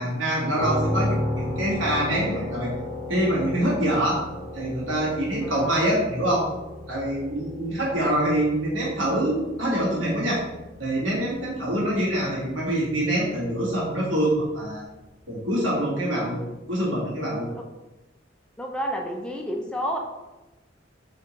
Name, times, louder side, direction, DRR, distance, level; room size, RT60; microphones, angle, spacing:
voice 1, 0.0-2.7 3.1-4.2 4.5-6.4 6.9-10.4 10.8-14.8 15.3-16.4 16.7-17.5, right 1 dB, 85° right, -6 dB, 1.5 m, -25 dB
sound 1, 0.6-14.3, left 1 dB, 25° right, 1.0 m, -34 dB
voice 2, 5.4-5.8 17.5-17.6 18.6-20.0, equal, 5° left, 1 dB, 0.3 m, -30 dB
4.2 x 2.6 x 3.0 m, 1.0 s
head